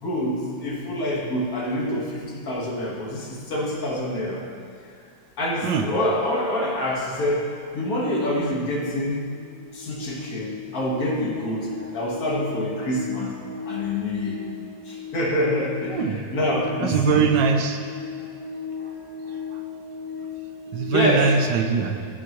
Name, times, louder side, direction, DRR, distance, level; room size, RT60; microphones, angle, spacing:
voice 1, 0.0-4.5 5.4-9.2 9.7-13.3 13.7-14.4 14.9-17.3 20.9-21.3, left 1 dB, 55° left, -3 dB, 1.9 m, -26 dB
sound 1, 9.2-21.1, left 6 dB, 10° left, 0.5 m, -37 dB
voice 2, 15.9-16.2 16.8-17.8 20.7-22.0, right 6 dB, 80° right, 5 dB, 1.4 m, -21 dB
14.5 x 9.6 x 3.0 m, 2.2 s
omnidirectional pair, 2.0 m